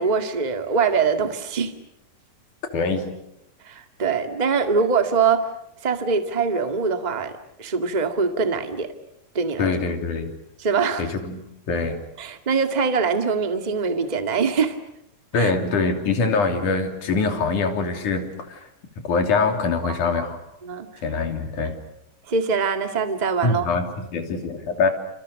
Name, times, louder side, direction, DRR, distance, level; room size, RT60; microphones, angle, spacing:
voice 1, 0.0-1.7 3.6-5.5 5.8-8.9 9.3-9.7 10.6-11.1 12.2-14.8 15.3-15.5 19.9-20.0 20.6-21.0 21.6-21.7 22.3-23.7, right 5 dB, 15° right, 7 dB, 1.5 m, -23 dB
voice 2, 2.6-3.1 9.6-10.4 11.0-12.0 15.3-18.7 19.0-20.4 21.0-21.8 23.4-24.9, left 4 dB, 70° left, 5 dB, 4.5 m, -24 dB
30.0 x 28.0 x 6.6 m, 0.80 s
omnidirectional pair, 3.8 m